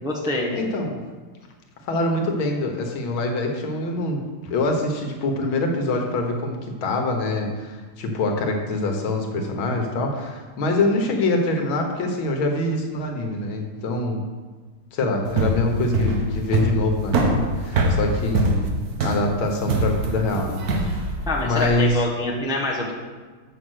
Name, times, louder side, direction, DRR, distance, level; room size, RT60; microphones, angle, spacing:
voice 1, 0.0-0.6 21.3-22.9, left 1 dB, 5° right, -3 dB, 1.0 m, -25 dB
voice 2, 0.5-1.0 1.9-14.2 14.9-21.1 21.4-22.0, left 2 dB, 80° left, 3 dB, 1.9 m, -25 dB
sound 1, 15.2-21.8, right 2 dB, 55° right, 1.4 m, -23 dB
7.5 x 6.0 x 6.3 m, 1.4 s
omnidirectional pair, 2.2 m